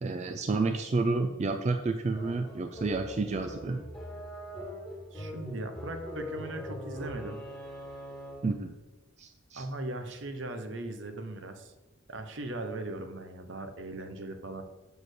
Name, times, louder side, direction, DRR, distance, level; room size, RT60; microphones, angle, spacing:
voice 1, 0.0-3.8 8.4-8.7 9.2-9.7, right 3 dB, 35° right, 6 dB, 0.4 m, -30 dB
sound 1, 2.1-8.6, equal, ahead, 2.0 m, -42 dB
voice 2, 5.1-7.4 9.5-11.7 12.1-14.6, right 2 dB, 65° right, 7 dB, 0.8 m, -39 dB
6.9 x 4.3 x 6.5 m, 1.1 s
head